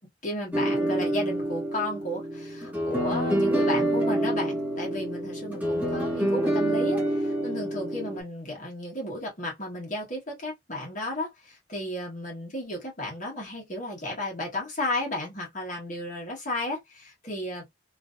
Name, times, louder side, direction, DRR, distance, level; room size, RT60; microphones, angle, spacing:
voice 1, 0.2-17.6, left 1 dB, 45° left, 1.5 m, -33 dB
sound 1, 0.5-8.2, right 1 dB, 10° right, 1.3 m, -27 dB
3.1 x 2.7 x 2.6 m
head